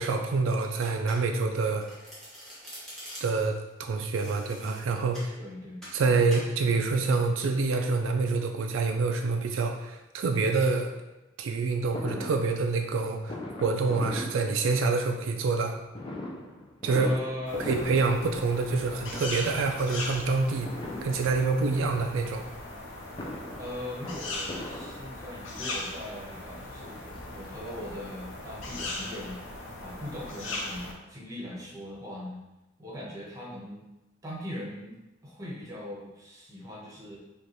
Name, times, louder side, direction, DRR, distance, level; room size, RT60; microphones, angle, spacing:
voice 1, 0.0-1.9 3.2-5.3 5.9-10.9 11.4-15.8 16.8-17.1 17.7-20.7 21.0-22.4, right 4 dB, 85° right, 4 dB, 0.4 m, -27 dB
Domestic sounds home sounds, 0.8-1.5 1.8-3.5 4.1-5.3 5.8-6.0 6.3-6.5, equal, 5° left, 1.2 m, -45 dB
voice 2, 5.4-5.8 16.9-17.7 18.0-18.1 23.6-29.4 29.8-32.4 32.8-33.8 34.2-34.9 35.2-37.2, left 1 dB, 20° right, -4 dB, 0.9 m, -40 dB
Fireworks, 11.9-15.1 15.9-18.8 19.1-19.7 20.7-21.7 22.9-25.5 26.3-26.4 26.7-26.8 27.1-28.4 28.7-28.8 29.0-29.1, left 1 dB, 25° left, 0.4 m, -40 dB
Owl screeching, 17.4-30.9, left 2 dB, 80° left, 0.7 m, -39 dB
5.1 x 2.4 x 3.0 m, 1.0 s
head